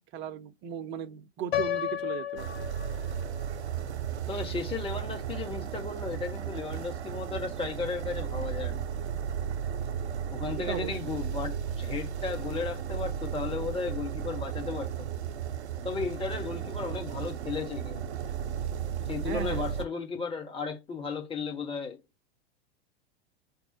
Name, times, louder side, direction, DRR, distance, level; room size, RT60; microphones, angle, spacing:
voice 1, 0.1-2.7 10.7-11.0 19.2-19.7, right 9 dB, 35° right, 0.7 m, -37 dB
Piano, 1.5-3.5, left 11 dB, 75° left, 0.9 m, -32 dB
sound 1, 2.4-19.8, right 8 dB, 80° right, 0.8 m, -35 dB
voice 2, 4.3-8.8 10.3-15.1 15.8-18.1 19.1-22.0, left 5 dB, 15° left, 1.2 m, -35 dB
5.3 x 2.0 x 4.3 m
hypercardioid pair, 105°, 33 cm